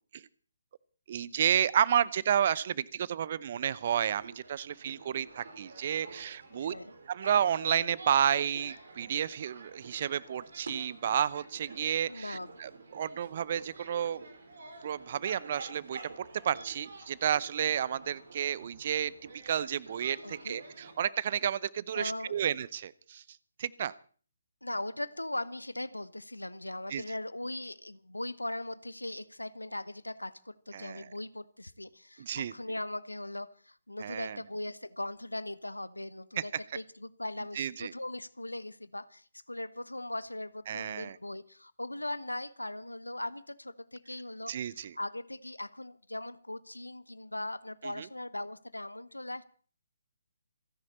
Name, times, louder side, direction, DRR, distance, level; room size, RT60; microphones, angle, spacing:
voice 1, 1.1-6.7 7.1-14.2 14.8-19.1 19.4-23.2 23.6-23.9 26.9-27.0 30.7-31.0 32.2-32.5 34.0-34.4 36.4-36.5 37.6-37.9 40.7-41.2 44.5-44.9 47.8-48.1, right 9 dB, 40° right, 22 dB, 0.6 m, -31 dB
sound 1, 3.8-20.9, right 3 dB, 55° right, 4.3 m, -50 dB
voice 2, 6.6-6.9 12.1-12.6 20.2-20.6 21.9-22.4 24.6-49.4, left 1 dB, 85° left, 18 dB, 1.0 m, -39 dB
28.0 x 10.5 x 4.2 m, 0.43 s
figure-of-eight pair, 140°, 0 cm